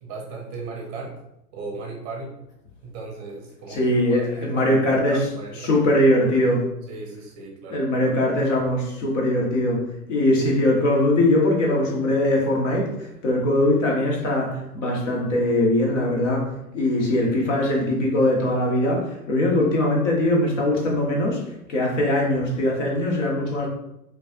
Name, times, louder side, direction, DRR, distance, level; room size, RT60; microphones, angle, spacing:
voice 1, 0.0-1.1 1.5-2.3 2.8-3.8 4.1-5.9 6.9-7.8, right 3 dB, 30° right, 0 dB, 0.7 m, -36 dB
voice 2, 3.7-5.3 5.6-6.6 7.7-9.8 10.1-12.9 13.2-21.4 21.7-23.7, left 1 dB, 50° left, -1 dB, 1.3 m, -21 dB
5.2 x 2.5 x 2.4 m, 0.85 s
figure-of-eight pair, 100°, 46 cm